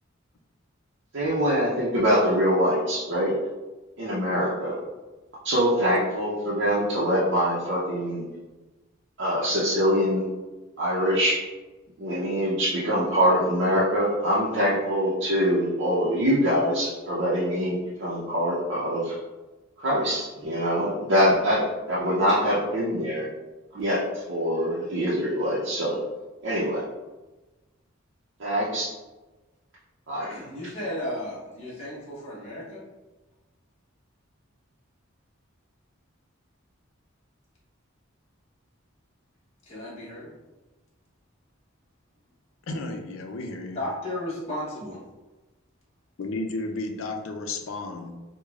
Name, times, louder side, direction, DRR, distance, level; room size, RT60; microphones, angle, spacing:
voice 1, 1.1-3.3 4.0-4.8 5.4-8.2 9.2-10.3 10.8-11.3 12.0-19.1 19.8-23.3 23.7-24.0 24.3-26.0 26.4-26.8 28.4-28.9 30.1-30.3, equal, 60° right, -8 dB, 0.7 m, -24 dB
voice 2, 30.2-32.8 39.6-40.3 43.7-45.0, left 1 dB, 30° left, -9 dB, 1.0 m, -34 dB
voice 3, 42.7-43.8 46.2-48.1, left 2 dB, 75° left, 3 dB, 0.5 m, -33 dB
4.7 x 2.2 x 2.3 m, 1.2 s
head